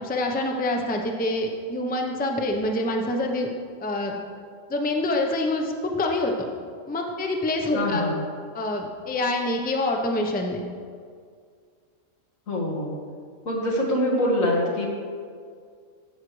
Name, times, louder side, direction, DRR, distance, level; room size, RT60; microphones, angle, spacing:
voice 1, 0.0-3.5 3.8-4.2 4.7-6.3 6.9-8.0 8.5-10.6, left 1 dB, 10° left, 2 dB, 0.5 m, -26 dB
voice 2, 7.7-8.2 12.5-12.9 13.5-14.9, left 1 dB, 85° left, -3 dB, 2.0 m, -24 dB
13.5 x 6.5 x 3.1 m, 2.1 s
omnidirectional pair, 1.4 m